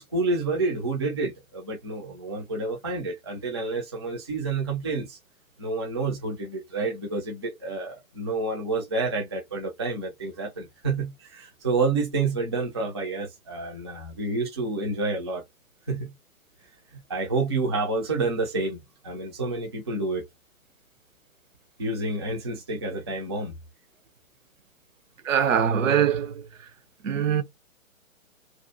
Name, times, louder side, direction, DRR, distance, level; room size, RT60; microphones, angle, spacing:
voice 1, 0.0-5.2 5.6-15.4 15.9-16.1 16.9-18.8 19.0-20.2 21.8-23.5, right 3 dB, 20° right, 0.3 m, -29 dB
voice 2, 25.2-26.4 27.0-27.4, right 8 dB, 70° right, 0.7 m, -22 dB
2.5 x 2.3 x 2.4 m
figure-of-eight pair, 125°, 41 cm